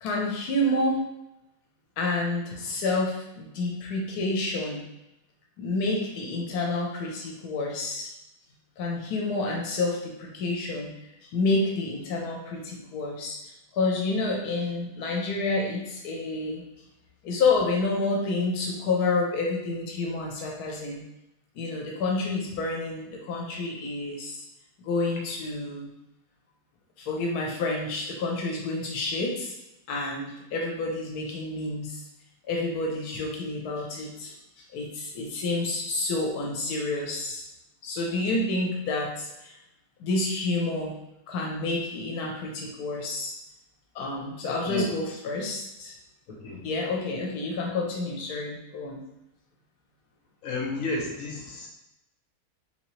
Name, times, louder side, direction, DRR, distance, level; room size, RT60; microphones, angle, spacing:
voice 1, 0.0-1.0 2.0-4.8 5.6-8.1 8.8-10.9 11.2-16.6 17.2-21.0 21.5-24.4 24.8-25.9 27.0-29.6 29.9-32.0 32.5-37.5 37.8-39.5 40.0-41.0 41.3-43.3 43.9-45.9 46.6-49.0, left 2 dB, 85° left, -1 dB, 1.2 m, -29 dB
voice 2, 46.3-46.6 50.4-51.7, left 2 dB, 65° left, -1 dB, 1.2 m, -32 dB
3.7 x 2.9 x 3.0 m, 0.87 s
omnidirectional pair, 1.6 m